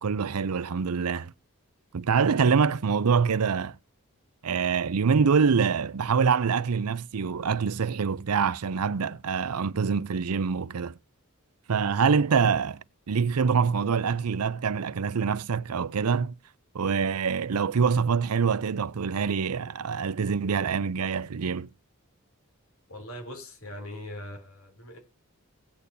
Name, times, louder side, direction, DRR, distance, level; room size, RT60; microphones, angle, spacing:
voice 1, 0.0-1.3 1.9-3.8 4.4-10.9 11.7-12.8 13.1-16.3 16.7-21.7, right 6 dB, 85° right, 0.5 m, -25 dB
voice 2, 22.9-25.0, left 1 dB, 65° left, 3.2 m, -41 dB
18.0 x 8.5 x 2.7 m
head